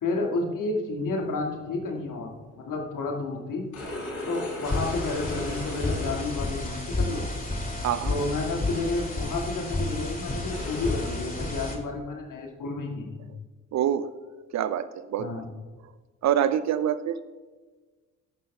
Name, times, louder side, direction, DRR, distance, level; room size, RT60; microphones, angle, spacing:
voice 1, 0.0-2.3 2.6-3.7 4.3-7.2 8.1-13.3 15.2-15.5, left 3 dB, 50° left, 1 dB, 2.4 m, -31 dB
sound 1, 1.3-1.5 3.5-6.8 7.5-7.8 8.4-8.5 9.3-9.4 10.4-11.0, left 2 dB, 75° left, 3.1 m, -37 dB
sound 2, 4.6-11.8, left 2 dB, 20° left, 2.8 m, -31 dB
voice 2, 13.7-14.1 14.5-15.3 16.2-17.2, right 10 dB, 40° right, 14 dB, 0.6 m, -25 dB
20.0 x 11.5 x 2.4 m, 1.3 s
figure-of-eight pair, 40°, 41 cm